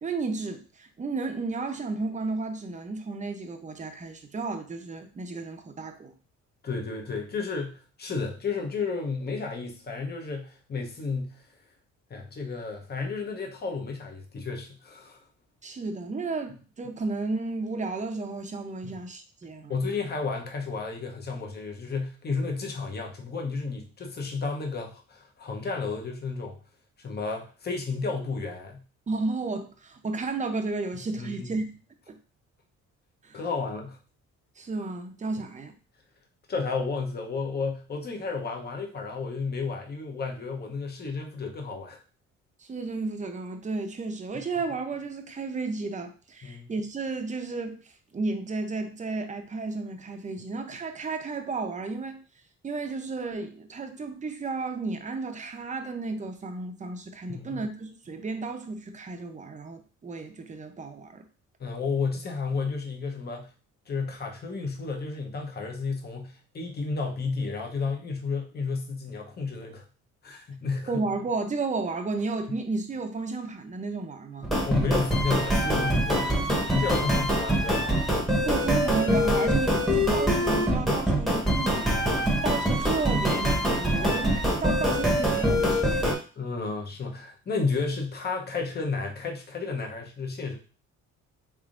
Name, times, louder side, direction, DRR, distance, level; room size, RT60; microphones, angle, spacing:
voice 1, 0.0-6.1 15.6-19.8 29.1-31.6 32.1-32.2 33.2-33.4 34.6-35.7 42.6-47.8 48.1-52.2 52.6-61.2 70.9-74.5 78.5-86.2, right 3 dB, 25° right, 0.6 m, -33 dB
voice 2, 6.6-11.4 12.1-15.2 18.8-18.9 19.7-26.6 27.0-28.8 31.2-31.5 33.3-34.0 36.5-42.0 46.4-46.7 57.3-57.6 61.6-63.5 63.9-69.8 70.2-71.0 74.7-78.5 82.1-82.4 84.0-84.2 86.4-90.6, left 4 dB, 35° left, 0.8 m, -32 dB
sound 1, 74.4-86.2, equal, ahead, 1.0 m, -24 dB
3.5 x 3.4 x 2.5 m
cardioid pair, 90°, 30 cm